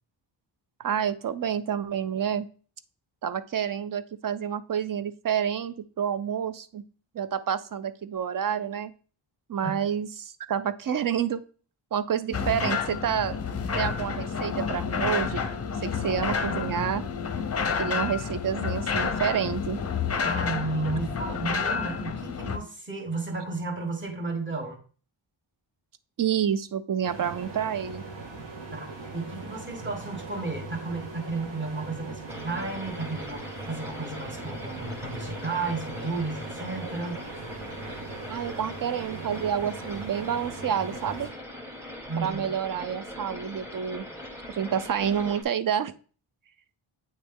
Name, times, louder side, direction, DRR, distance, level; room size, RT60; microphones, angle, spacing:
voice 1, 0.8-2.5 3.2-6.8 7.1-8.9 9.5-11.4 11.9-13.4 13.8-15.5 15.8-17.0 17.8-19.8 26.2-28.0 38.3-41.3 42.2-44.0 44.5-45.9, right 8 dB, 45° right, 13 dB, 0.4 m, -29 dB
sound 1, 12.3-22.6, left 6 dB, 30° left, 0.6 m, -29 dB
voice 2, 20.2-24.8 28.7-37.3 42.1-42.5, right 3 dB, 25° right, 2 dB, 1.2 m, -33 dB
sound 2, 27.0-41.3, right 3 dB, 80° right, 1.7 m, -40 dB
sound 3, 32.3-45.4, left 1 dB, 5° right, 1.0 m, -41 dB
8.7 x 3.1 x 3.5 m, 0.41 s
wide cardioid pair, 125°, 47 cm